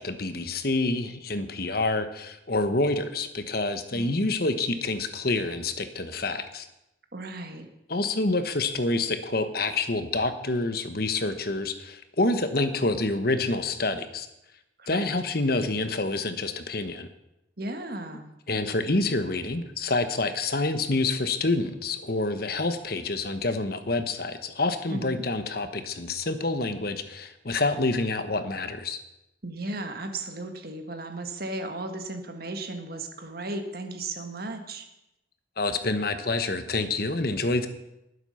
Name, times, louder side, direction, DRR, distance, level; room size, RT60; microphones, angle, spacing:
voice 1, 0.0-6.7 7.9-14.3 14.9-17.1 18.5-29.0 35.6-37.7, left 2 dB, 50° left, 9 dB, 1.2 m, -27 dB
voice 2, 3.9-4.3 7.1-7.7 14.8-15.0 17.6-18.3 24.9-25.2 29.4-34.9, right 2 dB, 50° right, 5 dB, 1.7 m, -35 dB
19.5 x 8.2 x 5.7 m, 0.88 s
head